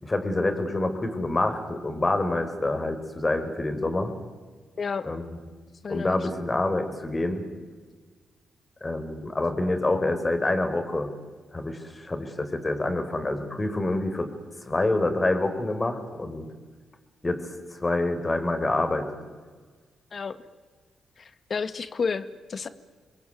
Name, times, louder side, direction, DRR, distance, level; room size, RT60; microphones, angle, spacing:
voice 1, 0.0-4.1 5.0-5.4 5.9-7.4 8.8-11.1 11.5-14.3 14.7-16.5 17.2-19.1, left 2 dB, 30° left, 7 dB, 4.9 m, -27 dB
voice 2, 5.8-6.2 20.1-20.4 21.2-22.7, left 5 dB, 50° left, 13 dB, 1.7 m, -31 dB
27.5 x 21.5 x 9.4 m, 1.5 s
hypercardioid pair, 40°, 0 cm